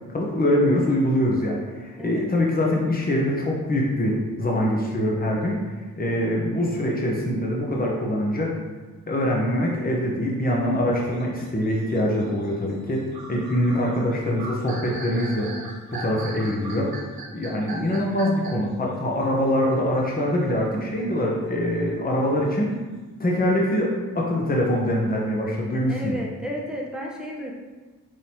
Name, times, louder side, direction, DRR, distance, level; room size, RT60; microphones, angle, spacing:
voice 1, 0.1-5.6 6.0-8.5 9.1-13.0 13.3-15.5 15.9-16.9 17.3-22.8 23.2-26.2, left 1 dB, 25° left, -2 dB, 1.0 m, -24 dB
voice 2, 2.0-2.3 25.9-27.5, equal, ahead, -3 dB, 1.1 m, -32 dB
sound 1, 10.9-18.7, right 3 dB, 80° right, 0.9 m, -39 dB
4.8 x 3.8 x 2.9 m, 1.3 s
cardioid pair, 50°, 36 cm